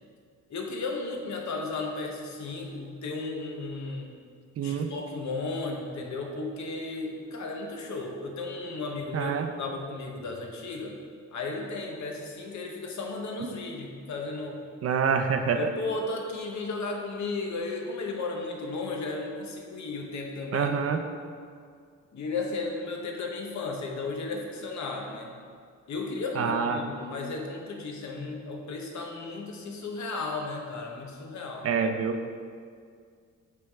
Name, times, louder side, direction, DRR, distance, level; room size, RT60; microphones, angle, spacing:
voice 1, 0.5-4.1 4.6-11.0 11.3-14.6 15.5-20.7 22.1-25.3 25.9-31.7, left 3 dB, 65° left, 1 dB, 0.9 m, -34 dB
voice 2, 4.6-4.9 9.1-9.5 14.8-15.6 20.5-21.0 26.4-26.8 31.6-32.2, right 6 dB, 50° right, 6 dB, 0.5 m, -26 dB
8.5 x 3.4 x 3.5 m, 2.1 s
cardioid pair, 125°, 31 cm